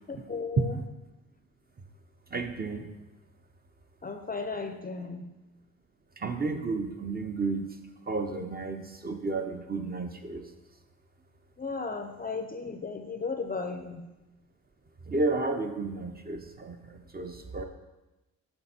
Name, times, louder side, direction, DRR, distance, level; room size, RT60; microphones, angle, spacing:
voice 1, 0.3-0.8 4.0-5.3 11.6-14.1, left 4 dB, 25° left, 5 dB, 0.4 m, -35 dB
voice 2, 2.3-2.9 6.2-7.7 8.1-10.4 15.1-16.8 17.1-17.6, right 3 dB, 25° right, 5 dB, 0.5 m, -31 dB
6.8 x 3.5 x 4.2 m, 1.0 s
cardioid pair, 70°, 36 cm